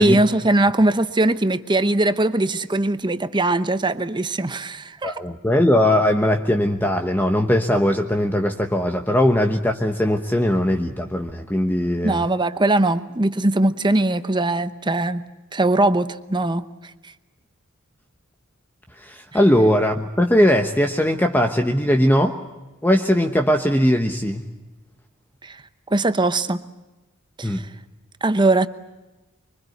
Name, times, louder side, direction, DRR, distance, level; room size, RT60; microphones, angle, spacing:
voice 1, 0.0-5.1 12.0-15.2 15.5-16.6 25.4-25.6 25.9-26.6 27.4-27.6 28.2-28.7, right 2 dB, 20° right, 11 dB, 0.9 m, -20 dB
voice 2, 5.0-12.3 19.0-22.4 22.8-24.4 27.4-27.6, left 1 dB, 10° left, 5 dB, 1.2 m, -19 dB
25.5 x 24.0 x 8.0 m, 1.1 s
head